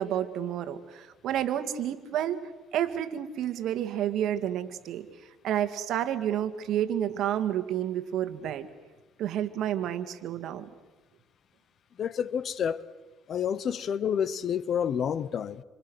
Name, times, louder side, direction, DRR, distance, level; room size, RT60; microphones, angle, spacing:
voice 1, 0.0-2.4 2.7-5.1 5.4-8.7 9.2-10.7, right 10 dB, 70° right, 1.9 m, -30 dB
voice 2, 12.0-12.8 13.3-15.6, left 8 dB, 50° left, 1.0 m, -29 dB
27.5 x 26.0 x 6.4 m
cardioid pair, 100°, 0 cm